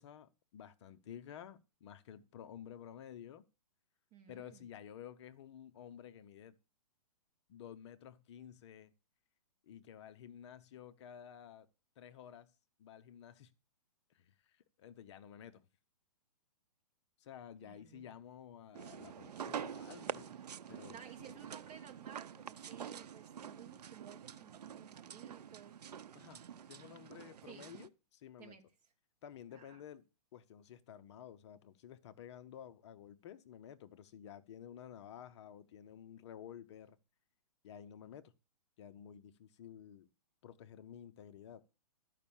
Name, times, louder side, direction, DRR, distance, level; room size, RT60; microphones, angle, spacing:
voice 1, 0.0-3.4 4.3-6.6 7.5-8.9 9.7-11.7 12.0-12.5 12.8-13.5 14.1-15.6 17.2-20.4 20.7-21.0 26.1-26.4 26.7-28.6 29.2-30.0 30.3-37.0 37.6-38.3 38.8-40.1 40.4-41.6, left 9 dB, 45° left, 0.8 m, -52 dB
voice 2, 4.1-4.6 17.6-18.1 20.9-25.7 27.4-27.7 28.4-28.6 29.5-29.8, right 9 dB, 25° right, 1.6 m, -56 dB
sound 1, 18.7-27.9, right 8 dB, 80° right, 0.7 m, -47 dB
12.5 x 5.4 x 7.2 m
hypercardioid pair, 150°, 20 cm